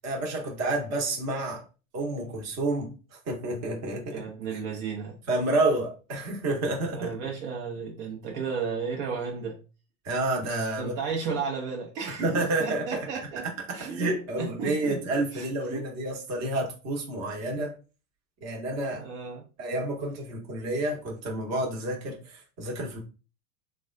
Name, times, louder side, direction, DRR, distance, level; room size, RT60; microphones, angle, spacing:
voice 1, 0.0-1.6 1.9-2.9 3.3-4.2 4.5-4.6 5.3-7.1 10.0-10.9 12.1-13.1 13.7-17.7 18.4-19.1 19.6-23.0, right 2 dB, 35° right, 1.1 m, -29 dB
voice 2, 4.1-5.2 6.9-9.6 10.8-13.5 13.7-14.0 14.4-15.0 15.3-15.8 18.9-19.4, right 5 dB, 55° right, 0.9 m, -34 dB
3.3 x 2.2 x 2.4 m
supercardioid pair, 130°, 45 cm